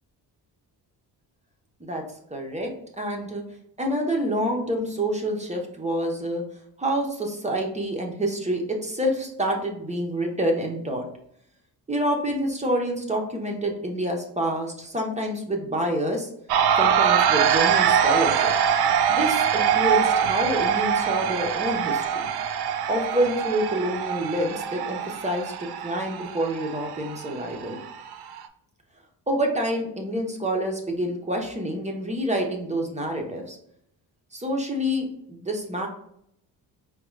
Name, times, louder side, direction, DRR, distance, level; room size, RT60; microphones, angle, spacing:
voice 1, 2.3-2.7 3.0-3.4 3.8-6.4 6.8-11.0 11.9-16.3 16.8-18.5 19.1-22.3 22.9-25.5 25.8-27.8 29.3-33.6 34.3-35.9, right 1 dB, 15° right, 1 dB, 0.9 m, -27 dB
sound 1, 16.5-28.5, right 8 dB, 70° right, 0.5 m, -23 dB
4.7 x 2.4 x 3.1 m, 0.72 s
cardioid pair, 85°, 40 cm